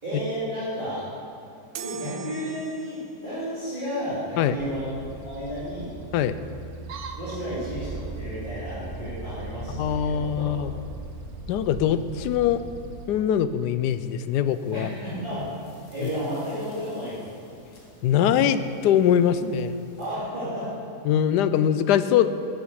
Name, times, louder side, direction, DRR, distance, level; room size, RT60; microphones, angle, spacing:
voice 1, 0.0-1.1 1.8-4.9 5.3-5.9 7.2-10.5 14.7-15.5 15.9-17.2 20.0-20.7, equal, 30° right, -13 dB, 3.1 m, -32 dB
sound 1, 1.8-3.3, right 4 dB, 85° right, 1.2 m, -38 dB
sound 2, 4.6-13.1, right 3 dB, 70° right, 1.3 m, -38 dB
voice 2, 9.7-10.7 11.5-12.6 13.1-14.9 16.0-16.1 18.0-19.7 21.0-22.3, left 9 dB, 85° left, 12 dB, 1.2 m, -22 dB
sound 3, 14.4-20.2, left 1 dB, 50° left, 2.0 m, -49 dB
11.5 x 9.9 x 4.8 m, 2.6 s
omnidirectional pair, 1.7 m